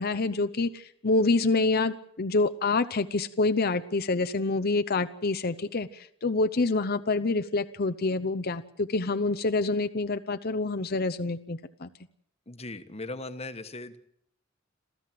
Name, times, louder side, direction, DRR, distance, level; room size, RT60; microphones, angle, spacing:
voice 1, 0.0-11.9, left 3 dB, 50° left, 9 dB, 0.8 m, -27 dB
voice 2, 12.5-14.0, left 2 dB, 30° left, 10 dB, 1.4 m, -38 dB
27.5 x 15.0 x 7.7 m, 0.71 s
head